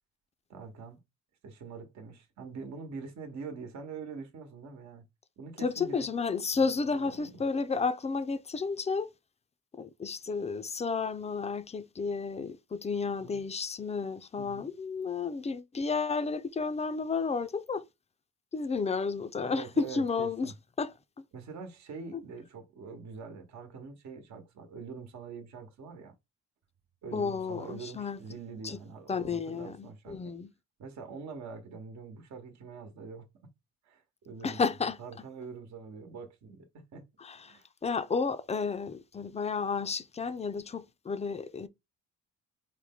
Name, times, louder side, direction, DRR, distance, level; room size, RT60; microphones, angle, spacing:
voice 1, 0.5-1.0 1.4-5.0 5.4-6.1 6.5-6.7 7.0-7.4 13.2-13.4 14.3-14.7 19.4-20.6 21.3-26.1 27.0-30.2 30.8-33.3 33.8-34.6 35.0-37.0 37.4-37.7, right 5 dB, 65° right, 1.1 m, -44 dB
voice 2, 5.6-9.1 9.7-17.8 18.5-20.5 20.8-21.2 22.1-22.2 27.1-28.2 28.6-28.8 29.1-30.5 34.4-35.0 37.2-37.4 37.8-41.7, left 4 dB, 20° left, 0.5 m, -32 dB
4.8 x 2.1 x 3.5 m
cardioid pair, 90°, 30 cm